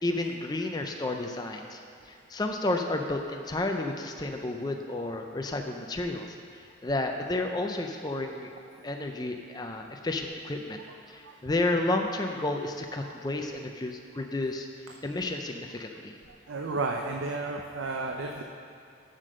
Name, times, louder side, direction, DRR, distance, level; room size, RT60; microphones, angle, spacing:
voice 1, 0.0-1.8 2.3-6.3 6.5-8.5 8.8-10.8 11.1-14.7 15.0-16.1, left 2 dB, 20° left, 3 dB, 0.5 m, -31 dB
voice 2, 16.5-18.4, right 3 dB, 80° right, 2 dB, 0.6 m, -32 dB
7.4 x 6.7 x 6.5 m, 2.5 s
head